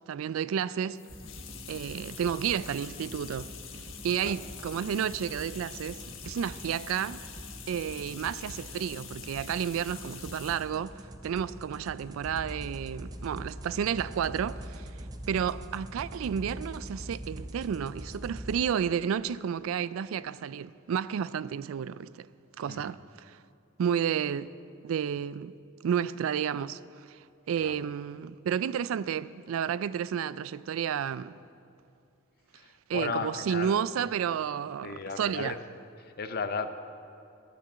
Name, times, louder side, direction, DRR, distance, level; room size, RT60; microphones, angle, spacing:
voice 1, 0.1-1.0 1.7-3.5 4.0-7.2 7.7-11.0 11.2-14.9 15.3-22.3 22.6-23.4 23.8-24.5 24.8-25.5 25.8-26.8 27.1-27.2 27.5-31.4 32.9-35.6, right 8 dB, 85° right, 0.3 m, -31 dB
sound 1, 0.9-10.7, left 8 dB, 75° left, 1.2 m, -46 dB
sound 2, 1.1-18.6, right 1 dB, 20° right, 0.7 m, -44 dB
voice 2, 32.5-33.8 34.8-35.6 36.0-36.7, left 5 dB, 50° left, 0.6 m, -35 dB
10.0 x 9.2 x 7.3 m
head